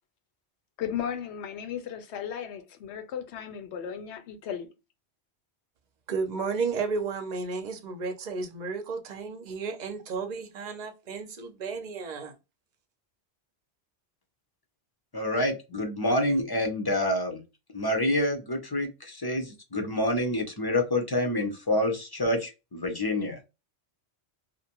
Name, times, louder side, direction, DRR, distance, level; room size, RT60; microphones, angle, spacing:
voice 1, 0.8-4.7, left 8 dB, 85° left, 0.9 m, -35 dB
voice 2, 6.1-12.3, right 4 dB, 50° right, 0.6 m, -33 dB
voice 3, 15.1-17.4 17.7-23.4, left 1 dB, 30° left, 0.5 m, -27 dB
2.5 x 2.1 x 2.8 m
omnidirectional pair, 1.1 m